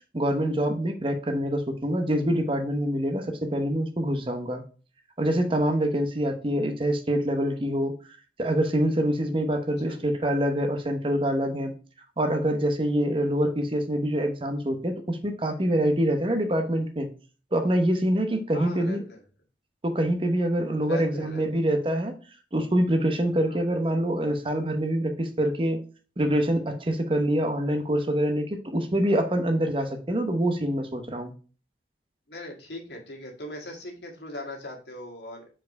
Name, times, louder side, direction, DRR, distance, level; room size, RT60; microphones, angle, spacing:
voice 1, 0.1-4.6 5.2-8.0 8.4-11.7 12.2-17.1 17.5-19.0 19.8-22.2 22.5-25.8 26.2-31.3, right 1 dB, 30° right, 6 dB, 0.9 m, -25 dB
voice 2, 18.5-19.2 20.9-21.4 23.4-23.6 32.3-35.5, left 1 dB, 75° left, 0 dB, 1.9 m, -39 dB
4.8 x 4.5 x 4.7 m, 0.37 s
head